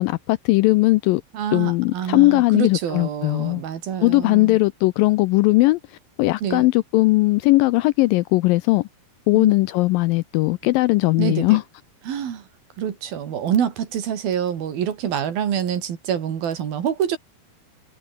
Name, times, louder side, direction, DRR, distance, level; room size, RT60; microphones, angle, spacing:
voice 1, 0.0-1.2 1.5-3.6 4.0-8.9 9.3-11.6, left 20 dB, 85° left, 2.0 m, -19 dB
voice 2, 1.3-4.6 6.4-6.7 9.3-9.5 11.2-11.6 12.1-12.4 12.8-17.2, right 8 dB, 70° right, 4.4 m, -26 dB
omnidirectional pair, 4.5 m